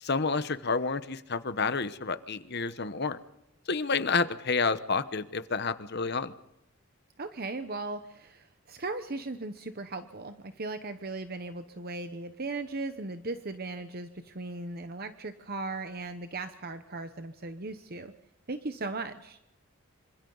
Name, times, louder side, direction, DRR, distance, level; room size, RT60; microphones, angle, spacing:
voice 1, 0.0-3.2 3.7-6.3, left 4 dB, 50° left, 12 dB, 1.1 m, -29 dB
voice 2, 7.2-18.1 18.5-19.4, right 3 dB, 45° right, 8 dB, 1.0 m, -37 dB
26.5 x 26.0 x 4.0 m, 0.88 s
head